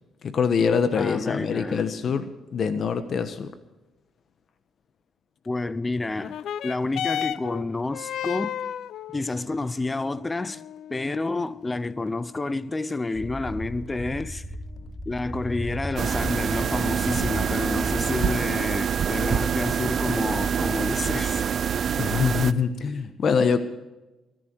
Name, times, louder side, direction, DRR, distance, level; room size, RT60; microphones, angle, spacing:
voice 1, 0.2-3.5 22.0-23.6, left 6 dB, 55° left, 1.2 m, -24 dB
voice 2, 1.0-2.2 5.5-6.4 6.6-8.6 9.1-10.6 10.9-14.4 15.1-21.5, left 2 dB, 20° left, 0.7 m, -29 dB
sound 1, 6.2-15.1 16.0-16.1, left 10 dB, 75° left, 0.5 m, -36 dB
sound 2, 13.1-18.2, equal, ahead, 3.8 m, -36 dB
sound 3, 16.0-22.5, right 7 dB, 55° right, 0.6 m, -26 dB
23.0 x 11.0 x 4.7 m
cardioid pair, 90°, 0 cm